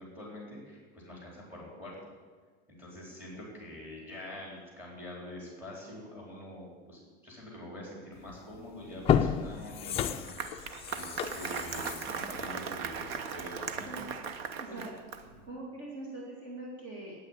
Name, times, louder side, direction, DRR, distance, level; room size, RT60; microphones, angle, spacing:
voice 1, 0.0-1.9 2.7-14.0 14.7-14.8 15.3-15.4, left 1 dB, 5° right, -3 dB, 4.3 m, -45 dB
sound 1, 8.3-8.4 8.9-13.6 14.0-14.1, left 8 dB, 20° left, 0.3 m, -32 dB
Applause, 9.9-15.4, right 7 dB, 85° right, 1.1 m, -38 dB
voice 2, 14.6-14.9 15.4-17.2, right 2 dB, 40° right, -3 dB, 2.5 m, -42 dB
9.1 x 8.9 x 9.0 m, 1.5 s
supercardioid pair, 155°, 30 cm